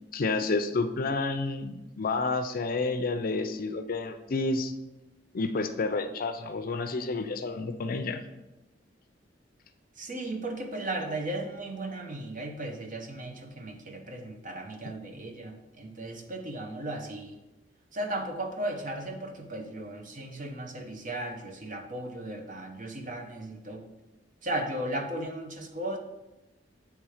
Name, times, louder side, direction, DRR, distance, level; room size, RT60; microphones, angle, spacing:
voice 1, 0.1-4.7 5.3-8.2, left 3 dB, 50° left, 9 dB, 0.5 m, -30 dB
voice 2, 10.0-17.4 17.9-23.8 24.4-26.0, right 1 dB, 45° right, 4 dB, 0.9 m, -36 dB
8.2 x 3.3 x 4.9 m, 0.99 s
head